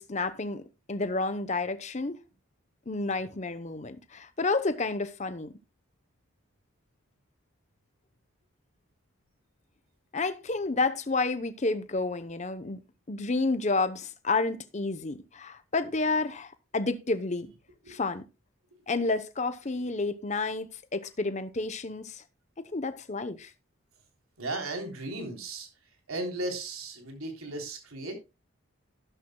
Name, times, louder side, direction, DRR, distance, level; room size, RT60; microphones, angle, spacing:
voice 1, 0.0-2.2 2.9-5.5 10.1-12.8 13.1-17.5 17.9-18.2 18.9-22.2 22.6-23.5, left 3 dB, 35° left, 0.8 m, -30 dB
voice 2, 24.4-25.7 26.1-28.1, right 2 dB, 85° right, 3.5 m, -36 dB
12.5 x 11.5 x 2.2 m
head